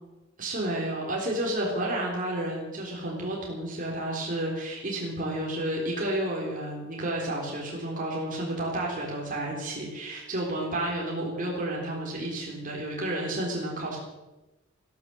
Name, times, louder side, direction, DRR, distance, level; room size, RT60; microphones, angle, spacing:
voice 1, 0.4-14.0, right 1 dB, 40° right, -2 dB, 3.8 m, -31 dB
14.0 x 12.5 x 7.9 m, 1.1 s
head